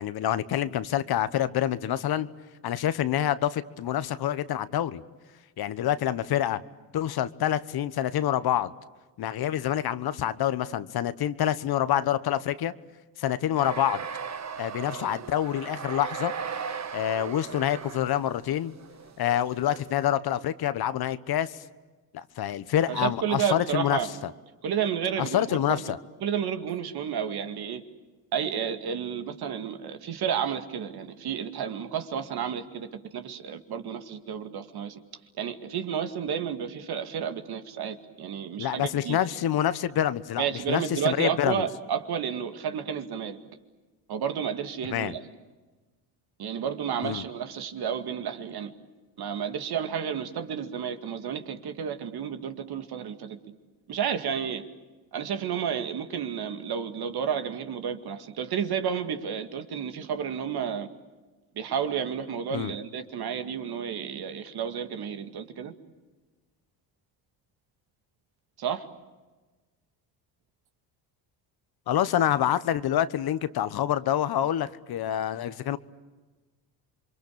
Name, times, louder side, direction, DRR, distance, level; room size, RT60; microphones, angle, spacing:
voice 1, 0.0-2.3 2.6-5.0 5.6-6.6 6.9-8.7 9.2-12.7 13.2-14.1 14.6-16.3 16.9-18.7 19.2-21.5 22.1-24.0 25.2-26.0 38.6-41.6 44.9-45.1 47.0-47.2 62.5-62.7 71.9-75.8, left 11 dB, 60° left, 14 dB, 1.2 m, -27 dB
sound 1, 13.6-20.1, right 6 dB, 40° right, 1.5 m, -37 dB
voice 2, 22.9-24.2 24.6-25.8 26.2-27.8 28.3-35.0 35.4-39.2 40.4-43.4 44.1-45.2 46.4-48.7 49.2-53.4 53.9-54.7 55.1-60.9 61.6-65.7 68.6-68.9, right 8 dB, 60° right, 7 dB, 2.2 m, -31 dB
28.5 x 23.5 x 8.6 m, 1.2 s
supercardioid pair, 80°, 42 cm